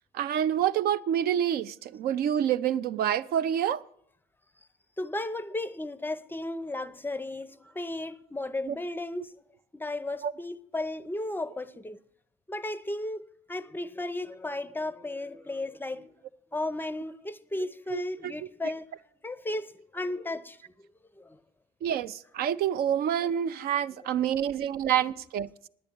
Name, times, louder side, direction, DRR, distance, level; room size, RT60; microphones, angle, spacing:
voice 1, 0.1-3.8 8.7-8.8 10.2-10.3 17.9-18.5 21.8-25.5, right 10 dB, 65° right, 0.5 m, -27 dB
voice 2, 5.0-9.3 9.7-12.0 12.5-16.1 16.5-18.9 19.2-20.6 21.2-21.4, left 2 dB, 10° left, 0.5 m, -34 dB
10.0 x 8.8 x 8.5 m
cardioid pair, 110°, 17 cm